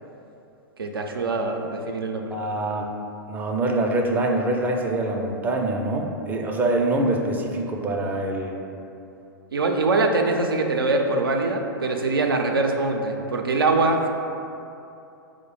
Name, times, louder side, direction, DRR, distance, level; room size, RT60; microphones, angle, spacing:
voice 1, 0.8-2.3 9.5-14.1, right 3 dB, 85° right, 2 dB, 0.4 m, -23 dB
voice 2, 2.3-2.9 3.3-8.6, right 2 dB, 15° right, 0 dB, 0.4 m, -24 dB
4.8 x 2.1 x 4.6 m, 2.7 s
figure-of-eight pair, 100°, 12 cm